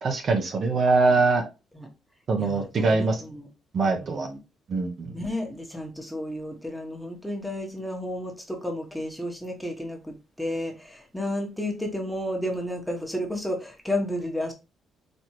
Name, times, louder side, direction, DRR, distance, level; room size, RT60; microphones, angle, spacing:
voice 1, 0.0-1.4 2.3-3.2 3.7-4.3 4.7-5.1, right 3 dB, 50° right, 0.9 m, -23 dB
voice 2, 2.4-3.5 4.0-4.4 5.1-14.5, left 1 dB, ahead, 1.2 m, -32 dB
4.2 x 3.1 x 3.1 m
cardioid pair, 90°, 0 cm